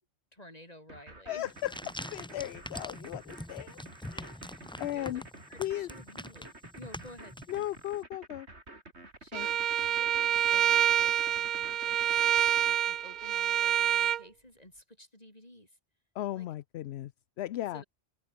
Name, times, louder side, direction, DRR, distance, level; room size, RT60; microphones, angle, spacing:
voice 1, 0.3-1.5 4.3-4.7 4.9-5.2 5.5-7.4 9.2-12.4 12.9-15.8 16.3-16.5 17.7-17.8, left 1 dB, 35° left, 5.7 m, -52 dB
sound 1, 0.9-12.8, right 2 dB, 75° right, 5.3 m, -50 dB
voice 2, 1.3-1.7 2.1-3.8 4.1-4.3 4.8-5.2 5.6-5.9 7.5-8.5 9.3-9.5 16.2-17.1 17.4-17.8, left 13 dB, 70° left, 0.8 m, -36 dB
sound 2, 1.4-7.9, left 1 dB, 5° left, 1.0 m, -44 dB
Bowed string instrument, 9.3-14.2, right 10 dB, 55° right, 0.5 m, -27 dB
open air
omnidirectional pair, 1.2 m